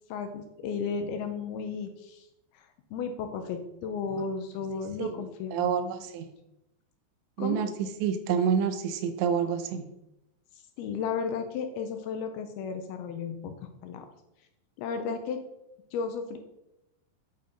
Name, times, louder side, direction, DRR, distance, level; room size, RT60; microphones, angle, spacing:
voice 1, 0.1-2.3 2.9-6.0 7.4-7.6 10.8-14.1 14.8-15.4 15.9-16.4, left 6 dB, 75° left, 6 dB, 2.4 m, -34 dB
voice 2, 5.0-6.3 7.4-9.9, right 7 dB, 90° right, 9 dB, 3.1 m, -28 dB
9.0 x 5.4 x 5.1 m, 0.87 s
omnidirectional pair, 4.9 m